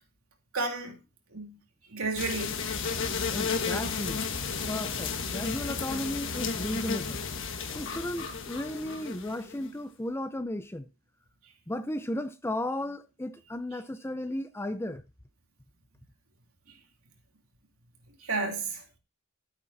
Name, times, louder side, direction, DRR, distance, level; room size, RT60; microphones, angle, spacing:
voice 1, 0.5-1.0 1.3-1.6 1.9-2.6 18.2-18.8, right 3 dB, 75° right, 2.9 m, -32 dB
sound 1, 2.2-9.7, left 5 dB, 60° left, 1.4 m, -33 dB
voice 2, 3.3-4.2 4.7-7.2 7.6-10.9 11.7-15.0, left 1 dB, 10° left, 0.5 m, -35 dB
13.5 x 8.5 x 2.8 m
head